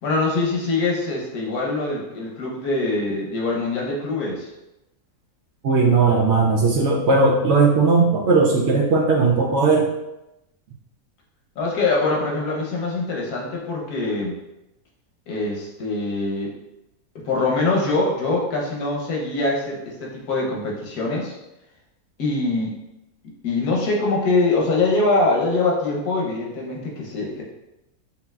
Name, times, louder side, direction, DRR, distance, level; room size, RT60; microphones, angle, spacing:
voice 1, 0.0-4.5 11.6-14.4 15.3-16.5 17.2-21.3 22.2-22.7 23.4-27.4, left 3 dB, 90° left, -2 dB, 1.4 m, -23 dB
voice 2, 5.6-9.9, right 4 dB, 60° right, -2 dB, 0.8 m, -17 dB
5.4 x 2.7 x 2.3 m, 0.92 s
omnidirectional pair, 1.6 m